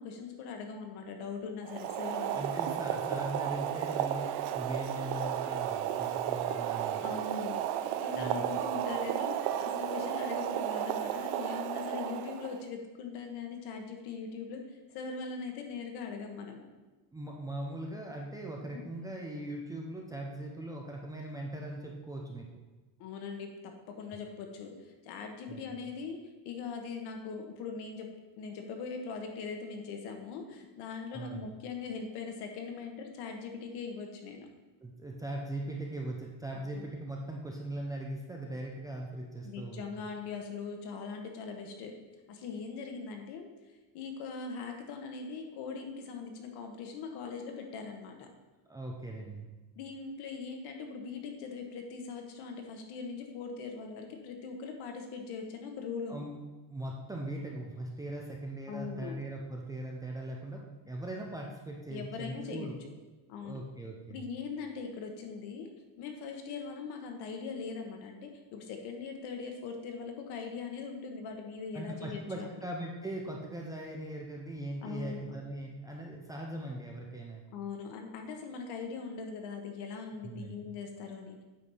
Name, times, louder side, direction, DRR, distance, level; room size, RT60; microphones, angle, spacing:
voice 1, 0.0-2.5 7.0-16.7 18.7-18.8 23.0-26.2 26.4-28.1 28.4-34.5 36.5-36.9 39.4-42.0 42.3-43.5 43.9-48.3 49.8-56.3 58.7-59.2 61.9-62.9 63.3-63.6 64.1-65.7 66.0-72.5 74.8-75.4 77.5-81.4, left 5 dB, 65° left, 3 dB, 1.4 m, -41 dB
Boiling, 1.6-12.6, right 10 dB, 65° right, 0.6 m, -33 dB
voice 2, 2.3-7.1 8.1-8.6 17.1-22.6 25.5-25.6 31.1-31.5 34.8-39.8 48.7-49.5 56.1-56.4 56.7-62.7 63.4-64.2 71.7-77.4 80.2-80.6, right 1 dB, 10° right, -1 dB, 0.5 m, -40 dB
8.5 x 4.7 x 5.4 m, 1.2 s
cardioid pair, 170°, 43 cm